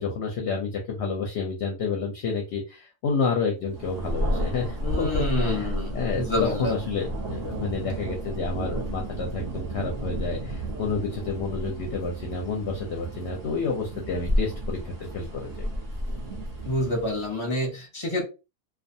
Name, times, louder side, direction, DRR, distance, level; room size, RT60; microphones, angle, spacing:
voice 1, 0.0-15.7, left 4 dB, 60° left, 1 dB, 0.7 m, -30 dB
Thunder, 3.7-17.3, equal, 30° right, 0.9 m, -32 dB
voice 2, 4.8-6.7 16.6-18.2, left 1 dB, 25° left, 0 dB, 0.7 m, -27 dB
2.4 x 2.3 x 2.6 m, 0.29 s
omnidirectional pair, 1.6 m